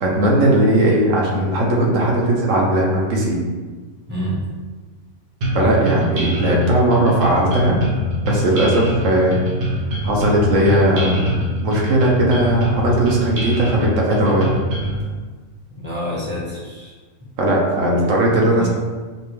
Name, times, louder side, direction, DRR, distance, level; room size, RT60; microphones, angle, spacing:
voice 1, 0.0-3.4 5.5-7.8 8.2-9.4 10.0-11.2 11.6-14.6 17.4-18.7, right 1 dB, 60° right, -2 dB, 1.1 m, -17 dB
voice 2, 4.1-4.4 15.7-16.9 18.0-18.7, equal, 10° right, -8 dB, 1.0 m, -28 dB
sound 1, 5.4-15.0, equal, 75° right, 1.4 m, -23 dB
5.0 x 2.3 x 3.2 m, 1.4 s
omnidirectional pair, 1.6 m